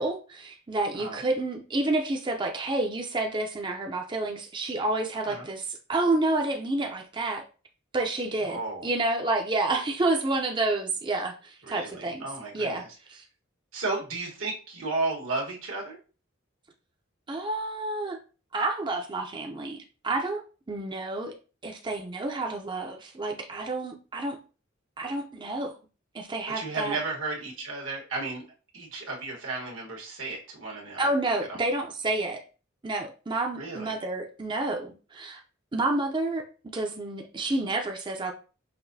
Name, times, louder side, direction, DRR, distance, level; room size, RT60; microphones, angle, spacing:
voice 1, 0.0-7.4 7.9-12.2 12.5-12.8 13.1-13.2 17.3-18.2 18.5-20.4 20.7-21.3 21.6-24.4 25.0-25.7 26.1-27.0 31.0-32.4 32.8-35.4 35.7-36.4 36.7-38.3, right 2 dB, 25° right, 2 dB, 0.5 m, -29 dB
voice 2, 8.4-8.9 11.6-12.9 13.7-16.0 26.5-28.4 28.7-31.1 31.5-31.6 33.5-33.9, right 3 dB, 80° right, -1 dB, 1.4 m, -33 dB
5.8 x 2.6 x 2.6 m, 0.35 s
head